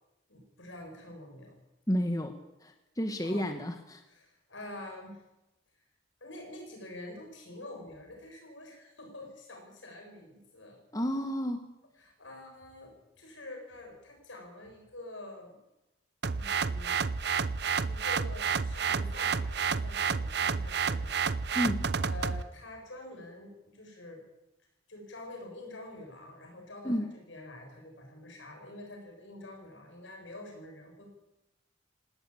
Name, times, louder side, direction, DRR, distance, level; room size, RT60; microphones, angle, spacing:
voice 1, 0.3-1.6 3.2-3.6 4.1-5.2 6.2-10.8 12.0-15.6 16.3-17.1 17.9-21.4 21.9-24.2 24.9-31.1, left 1 dB, 75° left, 2 dB, 7.3 m, -47 dB
voice 2, 1.9-4.0 10.9-11.7 21.5-21.8 26.8-27.1, equal, 20° left, 6 dB, 1.4 m, -31 dB
sound 1, 16.2-22.4, right 5 dB, 55° right, 0.7 m, -30 dB
19.0 x 17.0 x 8.6 m, 0.95 s
head